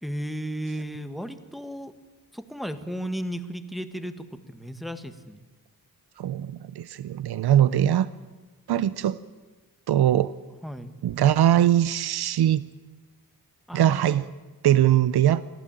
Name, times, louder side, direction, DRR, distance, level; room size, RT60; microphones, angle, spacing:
voice 1, 0.0-1.9 2.3-5.4 10.6-10.9 13.7-14.2, equal, ahead, 9 dB, 1.7 m, -34 dB
voice 2, 6.2-8.1 8.7-9.2 9.9-10.3 11.0-12.6 13.7-14.2 14.6-15.4, right 11 dB, 90° right, 16 dB, 0.7 m, -21 dB
25.0 x 15.5 x 9.0 m, 1.2 s
wide cardioid pair, 100°, 38 cm